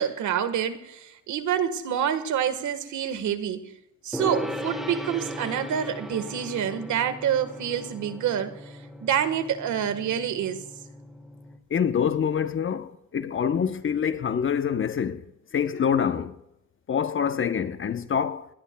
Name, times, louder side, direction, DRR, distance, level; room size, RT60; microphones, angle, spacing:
voice 1, 0.0-3.7 4.0-10.6, right 9 dB, 75° right, 1.5 m, -27 dB
Gong, 4.1-11.6, equal, ahead, 2.1 m, -38 dB
voice 2, 11.7-15.3 15.5-16.4 16.9-18.5, left 7 dB, 40° left, 0.9 m, -26 dB
28.0 x 19.0 x 2.3 m
cardioid pair, 90°, 30 cm